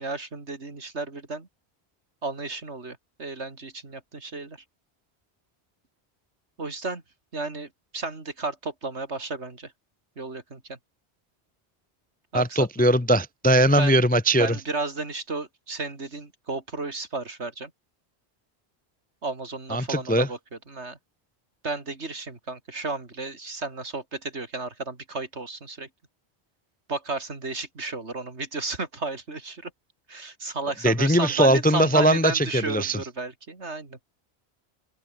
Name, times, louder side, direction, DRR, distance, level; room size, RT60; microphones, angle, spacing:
voice 1, 0.0-1.5 2.2-4.6 6.6-7.0 7.3-9.7 10.2-10.8 12.3-12.9 13.8-14.0 14.4-17.7 19.2-20.4 20.7-21.0 21.6-25.9 26.9-29.7 30.1-34.0, right 3 dB, 85° right, 3.4 m, -33 dB
voice 2, 12.3-14.6 19.7-20.3 30.8-33.0, right 1 dB, 15° left, 0.4 m, -20 dB
open air
omnidirectional pair, 1.1 m